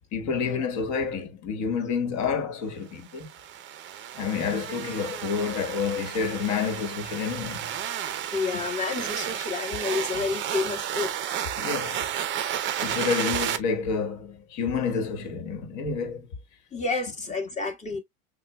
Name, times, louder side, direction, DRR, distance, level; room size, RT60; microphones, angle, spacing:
voice 1, 0.1-3.3 4.1-7.8 11.6-12.2 12.8-16.2, left 5 dB, 45° left, 1.4 m, -29 dB
sound 1, 3.1-13.6, right 10 dB, 30° right, 0.6 m, -32 dB
voice 2, 8.3-11.3 16.7-18.0, left 4 dB, 15° left, 1.6 m, -30 dB
6.5 x 2.3 x 2.2 m
supercardioid pair, 120°, 40 cm